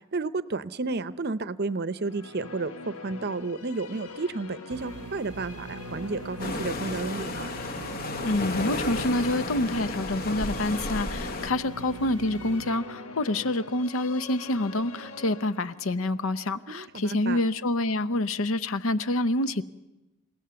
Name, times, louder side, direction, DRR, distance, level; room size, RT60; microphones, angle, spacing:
voice 1, 0.1-7.5 16.7-17.4, right 3 dB, 50° right, 0.7 m, -32 dB
Musical instrument, 1.9-17.3, left 4 dB, 85° left, 1.2 m, -44 dB
sound 1, 4.7-12.7, right 3 dB, 85° right, 0.7 m, -42 dB
sound 2, 6.4-11.5, left 2 dB, 40° left, 0.9 m, -33 dB
voice 2, 8.2-19.6, left 2 dB, 65° left, 0.7 m, -27 dB
29.0 x 17.0 x 7.0 m
head